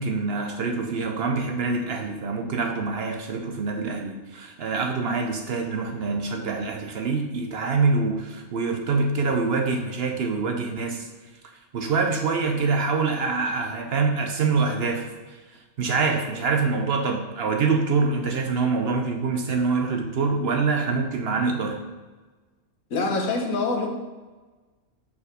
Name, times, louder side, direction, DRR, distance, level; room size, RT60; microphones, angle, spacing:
voice 1, 0.0-11.1 11.7-15.4 15.8-21.8, right 4 dB, 60° right, 4 dB, 0.7 m, -25 dB
voice 2, 22.9-23.9, left 3 dB, 90° left, 1 dB, 1.4 m, -25 dB
4.8 x 4.2 x 5.0 m, 1.3 s
omnidirectional pair, 1.4 m